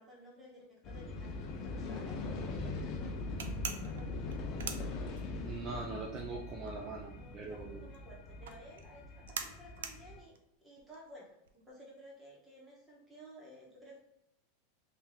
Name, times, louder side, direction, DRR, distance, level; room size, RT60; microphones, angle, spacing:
voice 1, 0.0-2.3 2.9-4.4 7.1-10.3 10.6-14.0, equal, 10° right, -5 dB, 1.5 m, -55 dB
sound 1, 0.8-10.2, left 2 dB, 40° left, 0.6 m, -41 dB
sound 2, 3.4-5.6 5.9-11.7, right 7 dB, 90° right, 0.5 m, -44 dB
voice 2, 5.4-7.8, right 3 dB, 30° right, 0 dB, 0.5 m, -42 dB
3.5 x 2.9 x 3.3 m, 0.85 s
supercardioid pair, 135°, 0 cm